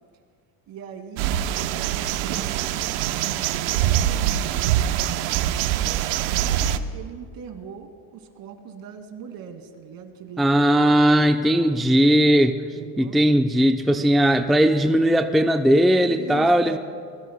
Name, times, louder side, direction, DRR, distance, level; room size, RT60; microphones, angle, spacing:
voice 1, 0.7-4.8 5.3-10.5 12.7-13.2 16.0-16.8, right 7 dB, 55° right, 5 dB, 2.4 m, -41 dB
sound 1, 1.2-6.8, right 11 dB, 85° right, 0.8 m, -24 dB
voice 2, 10.4-12.6 13.0-16.8, equal, ahead, 5 dB, 0.6 m, -18 dB
29.5 x 21.0 x 2.2 m, 2.1 s
supercardioid pair, 100°, 41 cm